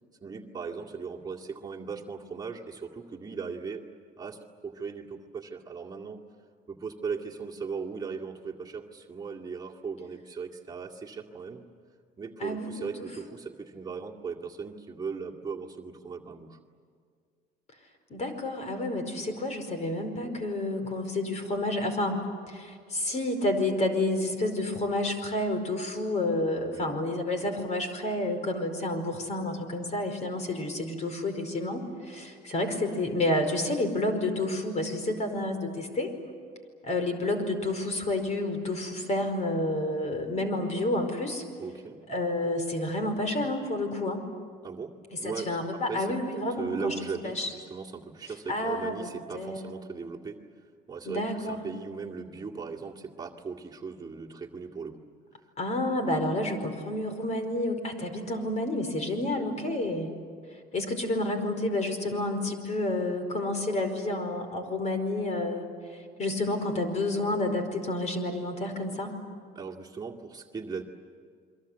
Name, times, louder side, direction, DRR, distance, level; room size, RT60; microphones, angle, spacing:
voice 1, 0.2-3.8 4.2-6.2 6.7-11.6 12.2-16.6 26.7-26.9 41.6-42.0 44.6-45.5 45.9-46.1 46.4-50.4 50.9-55.0 69.5-70.8, right 5 dB, 25° right, -1 dB, 2.2 m, -38 dB
voice 2, 12.4-13.1 18.1-22.2 22.5-36.1 36.8-41.4 42.1-44.2 45.2-47.5 48.5-49.1 49.3-49.6 51.0-51.6 55.6-60.1 60.7-65.6 65.9-69.1, left 1 dB, 40° left, 7 dB, 4.9 m, -30 dB
29.5 x 23.0 x 8.2 m, 2.1 s
cardioid pair, 110°, 17 cm